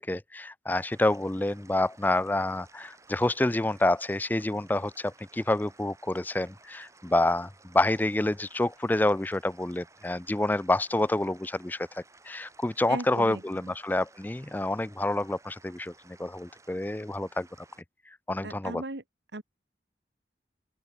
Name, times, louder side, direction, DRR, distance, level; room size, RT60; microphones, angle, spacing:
voice 1, 0.0-17.5 18.3-18.8, left 1 dB, 10° left, 0.4 m, -28 dB
sound 1, 0.8-17.8, right 3 dB, 15° right, 6.2 m, -57 dB
voice 2, 12.9-13.7 18.4-19.0 19.3-19.4, right 2 dB, 80° right, 1.7 m, -38 dB
open air
head